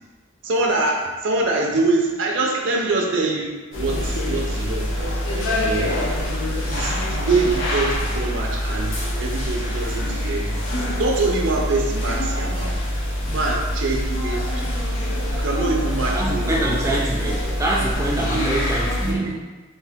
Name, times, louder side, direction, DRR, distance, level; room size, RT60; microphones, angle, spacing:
voice 1, 0.4-4.9 5.6-5.9 6.7-10.7 11.0-12.8 13.3-14.6 14.9-16.7 18.1-18.4 19.0-19.3, right 3 dB, 70° right, -1 dB, 0.5 m, -24 dB
sound 1, 3.7-19.1, left 1 dB, 75° left, 0.7 m, -25 dB
voice 2, 16.1-19.4, right 1 dB, 15° right, -3 dB, 0.4 m, -25 dB
2.7 x 2.7 x 3.5 m, 1.2 s
head